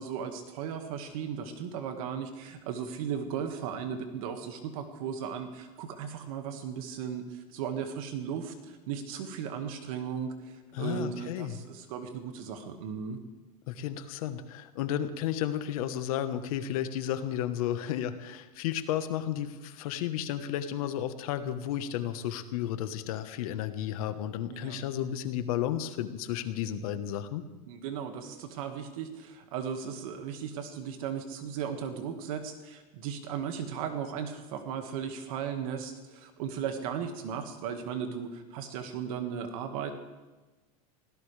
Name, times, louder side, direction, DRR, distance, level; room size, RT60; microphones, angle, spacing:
voice 1, 0.0-13.2 24.5-24.8 27.7-39.9, right 7 dB, 60° right, 6 dB, 1.8 m, -36 dB
voice 2, 10.7-11.5 13.7-27.4, left 10 dB, 65° left, 10 dB, 1.2 m, -33 dB
24.5 x 17.0 x 3.4 m, 1.2 s
supercardioid pair, 165°, 20 cm